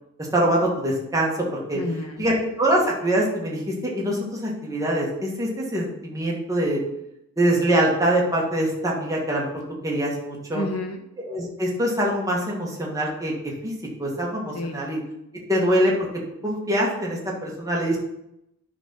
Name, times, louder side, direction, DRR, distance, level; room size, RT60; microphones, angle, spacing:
voice 1, 0.2-1.8 2.2-6.8 7.4-9.5 9.8-10.6 11.3-13.7 14.0-15.0 15.5-15.9 16.4-18.0, right 1 dB, 15° right, -2 dB, 1.9 m, -24 dB
voice 2, 1.7-2.3 10.5-11.0 14.5-14.8, left 1 dB, 70° left, 3 dB, 1.4 m, -30 dB
9.8 x 4.1 x 5.8 m, 0.84 s
head